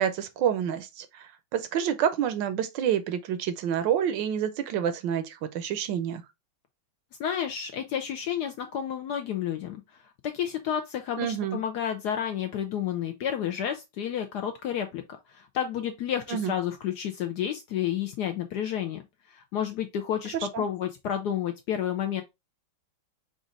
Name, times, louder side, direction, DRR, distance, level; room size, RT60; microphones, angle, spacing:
voice 1, 0.0-6.2 11.2-11.6 16.3-16.5 20.5-20.6, right 9 dB, 70° right, 1.2 m, -28 dB
voice 2, 7.2-9.8 10.2-15.0 15.3-19.0 19.3-22.2, left 9 dB, 75° left, 0.9 m, -30 dB
5.1 x 2.4 x 3.7 m
omnidirectional pair, 2.2 m